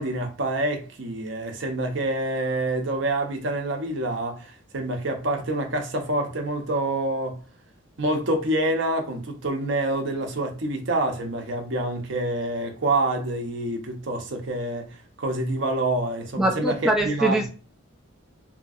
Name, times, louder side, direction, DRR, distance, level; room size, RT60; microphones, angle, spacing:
voice 1, 0.0-7.4 8.0-17.4, right 1 dB, 60° right, 0.7 m, -27 dB
voice 2, 16.4-17.5, right 1 dB, ahead, 0.3 m, -23 dB
2.8 x 2.6 x 2.4 m
head